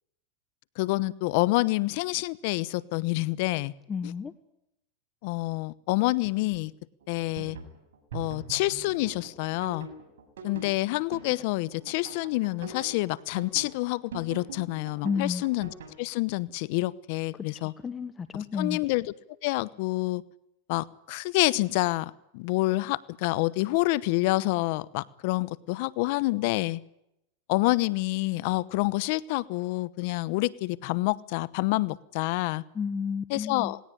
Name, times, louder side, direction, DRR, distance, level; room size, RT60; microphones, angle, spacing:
voice 1, 0.8-3.7 4.0-4.1 5.2-6.7 7.1-7.6 8.1-9.9 10.4-15.7 16.0-17.7 18.3-19.1 19.4-20.2 20.7-26.8 27.5-32.6 33.3-33.8, left 20 dB, 60° left, 20 dB, 0.9 m, -28 dB
voice 2, 3.9-4.3 15.0-15.4 17.3-17.5 17.8-18.8 32.7-33.7, left 6 dB, 20° left, 11 dB, 1.3 m, -31 dB
sound 1, 7.0-15.9, right 4 dB, 80° right, 7.0 m, -42 dB
20.0 x 18.0 x 9.9 m, 0.82 s
hypercardioid pair, 115°, 0 cm